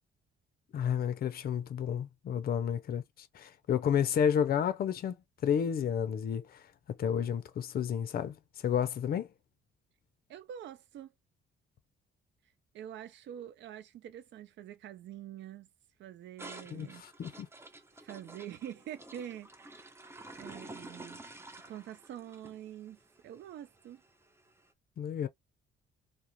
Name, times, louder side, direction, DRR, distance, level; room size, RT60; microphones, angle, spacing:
voice 1, 0.7-5.2 5.4-6.6 7.0-8.4 8.6-9.3 16.7-17.5 25.0-25.3, left 8 dB, 50° left, 0.5 m, -31 dB
voice 2, 10.3-11.1 12.7-15.7 16.0-17.0 18.0-19.9 20.3-21.2 21.7-24.0, right 10 dB, 65° right, 0.5 m, -46 dB
sound 1, 16.4-24.6, right 2 dB, 15° right, 0.5 m, -50 dB
2.4 x 2.0 x 2.9 m
cardioid pair, 90°, 20 cm